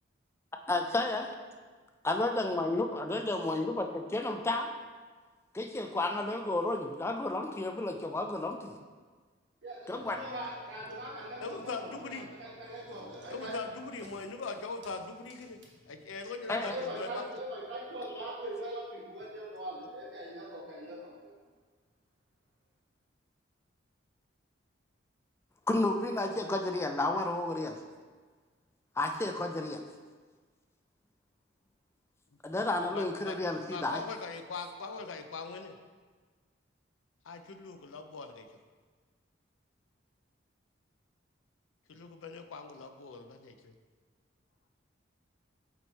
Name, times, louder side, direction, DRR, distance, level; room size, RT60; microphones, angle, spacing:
voice 1, 0.7-1.3 2.0-4.7 5.5-8.7 9.9-10.2 16.5-16.8 25.7-27.8 29.0-29.9 32.4-34.0, left 2 dB, 15° left, 5 dB, 0.3 m, -31 dB
voice 2, 9.6-13.6 16.5-21.3, right 1 dB, 60° right, -4 dB, 1.4 m, -41 dB
voice 3, 11.4-12.3 13.3-17.3 32.9-33.4 33.6-35.7 37.3-38.5 41.9-43.7, left 4 dB, 85° left, 8 dB, 0.5 m, -41 dB
7.8 x 3.0 x 4.1 m, 1.5 s
head